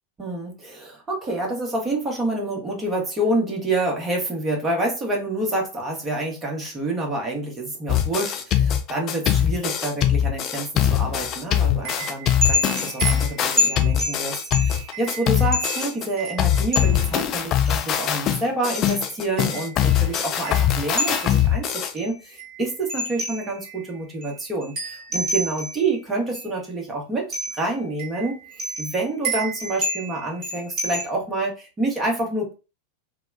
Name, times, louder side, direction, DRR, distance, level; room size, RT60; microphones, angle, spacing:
voice 1, 0.2-28.4 28.8-32.5, right 2 dB, 15° right, -1 dB, 1.0 m, -28 dB
sound 1, 7.9-16.1 16.4-21.9, left 10 dB, 35° left, 0.4 m, -22 dB
sound 2, 11.8-17.1 17.7-17.8 18.7-21.5 22.0-23.8 24.2-24.3 24.6-25.9 26.3-26.4 27.3-27.7 28.0-31.0, equal, 35° right, 1.1 m, -28 dB
2.9 x 2.1 x 2.4 m, 0.31 s
figure-of-eight pair, 90°, 0 cm